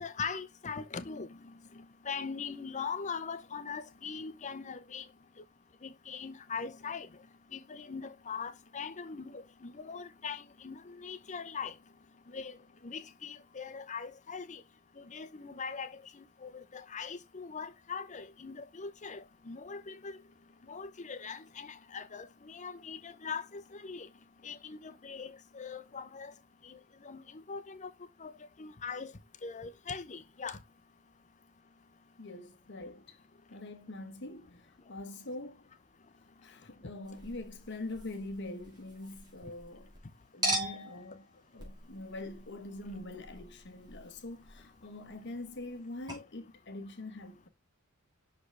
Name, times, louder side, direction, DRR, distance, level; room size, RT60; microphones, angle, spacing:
voice 1, 0.0-1.5 2.1-5.0 5.8-7.1 7.5-11.7 12.3-12.6 12.8-14.6 15.0-20.2 20.7-24.1 24.4-26.3 26.6-26.8 27.0-27.9 28.2-28.3 28.6-29.1 29.4-30.6, left 5 dB, 35° left, 0.6 m, -41 dB
voice 2, 32.2-33.2 33.5-35.6 36.4-39.9 40.3-47.5, left 2 dB, 55° left, 1.1 m, -44 dB
Chink clink, 37.0-40.0 40.4-45.8 46.1-46.2, right 1 dB, 20° right, 3.0 m, -41 dB
6.0 x 5.1 x 3.3 m
head